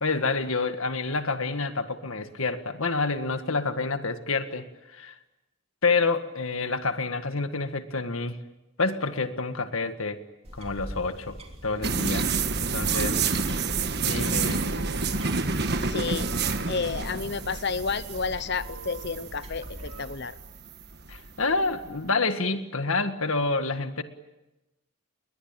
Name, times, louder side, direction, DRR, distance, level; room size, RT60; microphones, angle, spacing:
voice 1, 0.0-5.2 5.8-8.4 8.8-10.2 10.5-11.4 11.6-12.3 12.6-13.2 14.0-14.6 21.1-24.0, left 3 dB, 70° left, 9 dB, 1.8 m, -28 dB
sound 1, 10.4-20.2, equal, 25° right, 3.1 m, -44 dB
sound 2, 11.8-22.0, right 4 dB, 50° right, 1.5 m, -29 dB
sound 3, 13.4-20.1, right 2 dB, 90° right, 3.5 m, -47 dB
voice 2, 15.8-20.4, left 5 dB, 50° left, 14 dB, 0.9 m, -31 dB
29.5 x 22.0 x 9.0 m, 0.98 s
head